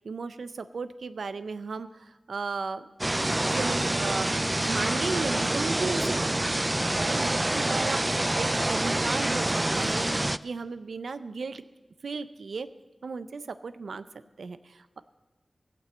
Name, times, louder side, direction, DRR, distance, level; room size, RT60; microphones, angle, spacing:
voice 1, 0.0-4.4 4.7-11.6 12.0-12.7 13.0-14.0 14.4-15.0, right 4 dB, 90° right, 13 dB, 0.5 m, -35 dB
sound 1, 3.0-10.4, right 1 dB, 25° right, 0.3 m, -27 dB
15.5 x 6.0 x 7.9 m, 1.1 s
cardioid pair, 55°, 0 cm